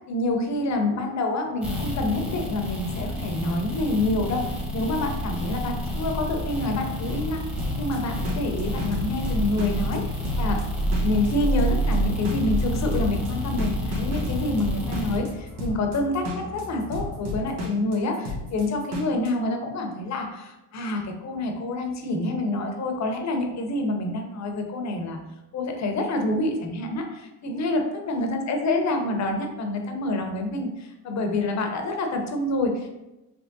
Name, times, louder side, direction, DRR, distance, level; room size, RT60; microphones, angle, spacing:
voice 1, 0.1-7.4 7.8-10.0 10.4-10.6 11.0-25.2 25.5-27.8 28.1-32.9, left 2 dB, 40° left, 4 dB, 0.7 m, -27 dB
sound 1, 1.6-15.2, equal, 5° right, 1.0 m, -29 dB
sound 2, 5.5-17.1, left 3 dB, 85° left, 0.8 m, -39 dB
sound 3, 7.6-19.3, left 2 dB, 85° right, 1.1 m, -33 dB
3.5 x 3.3 x 2.6 m, 0.97 s
supercardioid pair, 95°, 43 cm